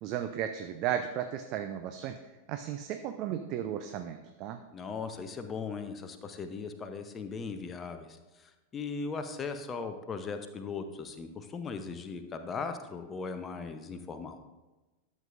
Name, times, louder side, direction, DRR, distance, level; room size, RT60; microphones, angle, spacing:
voice 1, 0.0-2.2 2.5-4.6, right 10 dB, 40° right, 8 dB, 0.5 m, -34 dB
voice 2, 4.7-14.4, left 4 dB, 20° left, 7 dB, 0.7 m, -38 dB
12.0 x 7.3 x 2.5 m, 1.1 s
figure-of-eight pair, 90°, 0 cm